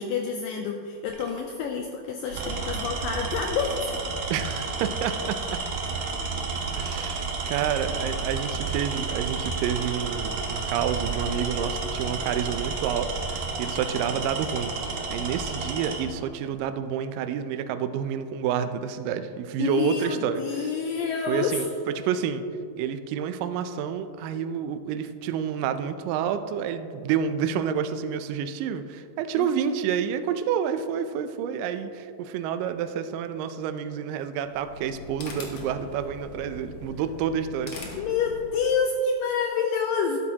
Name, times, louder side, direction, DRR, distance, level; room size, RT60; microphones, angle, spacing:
voice 1, 0.0-4.0 19.6-21.7 29.4-29.5 38.0-40.2, left 5 dB, 85° left, 3 dB, 2.0 m, -28 dB
Tools, 1.1-1.4 2.2-16.1, right 4 dB, 65° right, 1.8 m, -31 dB
voice 2, 4.3-5.6 6.8-14.7 15.1-20.7 21.3-21.7 22.0-22.4 22.8-37.7, right 8 dB, 85° right, 9 dB, 1.9 m, -29 dB
sound 1, 34.4-38.8, left 2 dB, 60° left, 1.5 m, -42 dB
12.0 x 12.0 x 2.9 m, 2.6 s
omnidirectional pair, 4.5 m